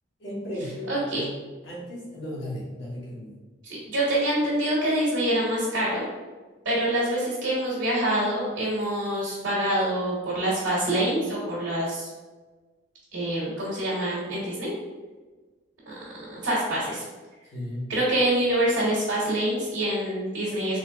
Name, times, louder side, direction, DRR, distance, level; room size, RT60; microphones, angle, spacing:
voice 1, 0.2-1.3 1.6-3.3 17.5-17.9, left 1 dB, 60° left, -5 dB, 1.2 m, -35 dB
voice 2, 0.9-1.2 3.6-6.0 6.6-12.1 13.1-14.7 15.8-15.9 16.3-17.0 17.9-20.8, right 1 dB, 70° right, -7 dB, 1.3 m, -26 dB
3.9 x 3.2 x 2.3 m, 1.3 s
head